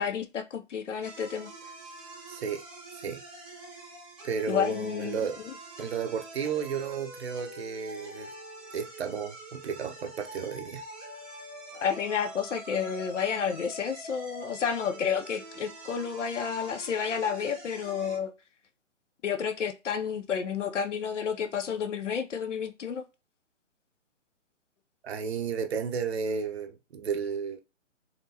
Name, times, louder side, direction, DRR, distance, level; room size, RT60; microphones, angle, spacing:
voice 1, 0.0-1.5 4.5-5.2 11.7-18.3 19.2-23.0, left 7 dB, 65° left, 0.6 m, -30 dB
sound 1, 1.0-18.2, right 2 dB, ahead, 0.5 m, -45 dB
voice 2, 2.3-2.6 2.9-3.2 4.2-5.4 5.8-8.3 8.7-10.8 25.0-27.6, right 6 dB, 55° right, 0.7 m, -33 dB
4.2 x 3.0 x 2.7 m
figure-of-eight pair, 135°, 39 cm